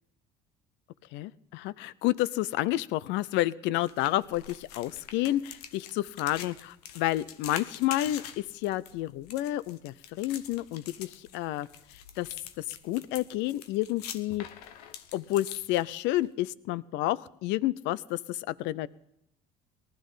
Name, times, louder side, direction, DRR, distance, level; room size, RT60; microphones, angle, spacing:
voice 1, 1.1-11.7 12.2-12.3 12.6-14.5 15.1-18.9, left 15 dB, 70° left, 19 dB, 0.7 m, -30 dB
sound 1, 3.8-16.3, left 9 dB, 90° left, 1.2 m, -45 dB
19.0 x 12.5 x 5.6 m, 0.79 s
supercardioid pair, 75°, 19 cm